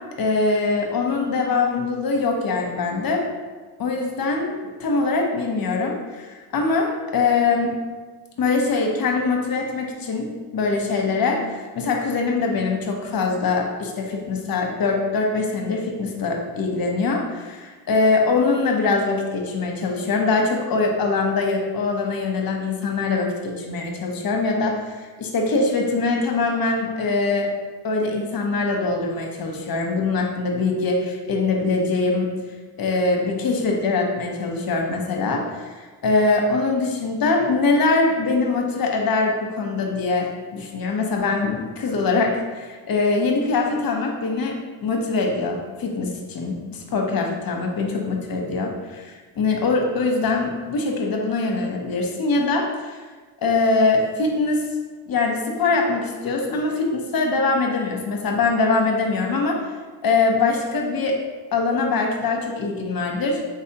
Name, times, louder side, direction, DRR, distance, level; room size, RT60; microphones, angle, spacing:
voice 1, 0.2-3.2 3.8-7.7 8.4-27.5 27.8-32.3 32.8-53.0 53.4-54.7 55.1-59.6 60.0-61.2 61.5-63.4, left 3 dB, 55° left, 2 dB, 0.8 m, -23 dB
4.2 x 3.8 x 2.8 m, 1.3 s
cardioid pair, 100°, 42 cm